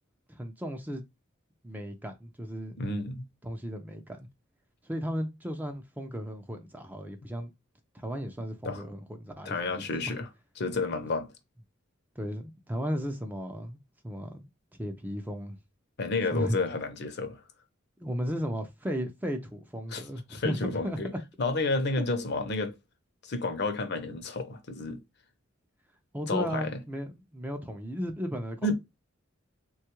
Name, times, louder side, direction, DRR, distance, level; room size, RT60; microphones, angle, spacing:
voice 1, 0.3-1.0 1.6-2.9 3.4-4.2 4.8-7.5 7.9-10.1 12.2-13.8 14.0-14.5 14.8-15.6 16.3-16.6 18.0-20.6 20.8-21.2 26.1-28.7, equal, 10° right, 0.4 m, -35 dB
voice 2, 2.8-3.2 8.6-8.8 9.4-10.3 10.6-11.3 16.0-17.4 19.9-20.0 20.3-21.1 21.4-22.7 23.2-25.0 26.3-26.8 28.6-28.7, left 3 dB, 55° left, 0.6 m, -30 dB
3.5 x 2.3 x 2.9 m
head